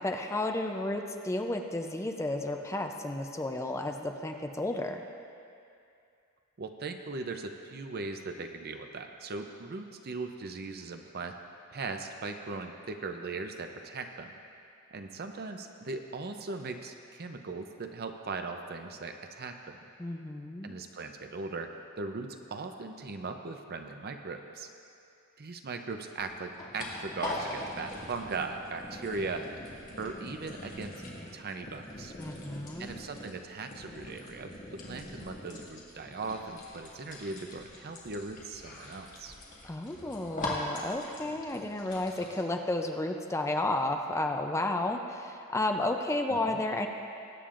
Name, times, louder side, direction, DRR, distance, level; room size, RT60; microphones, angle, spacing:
voice 1, 0.0-5.0 20.0-20.8 32.2-32.9 39.6-46.9, left 2 dB, 15° left, 4 dB, 0.5 m, -32 dB
voice 2, 6.6-11.4 11.7-14.4 14.9-19.8 20.6-21.7 22.0-24.7 25.4-29.5 30.0-30.9 31.3-32.1 32.8-39.3 46.3-46.6, right 3 dB, 50° right, 6 dB, 0.6 m, -39 dB
sound 1, 26.1-42.4, left 1 dB, 35° left, 2.1 m, -42 dB
21.0 x 8.6 x 2.5 m, 2.5 s
head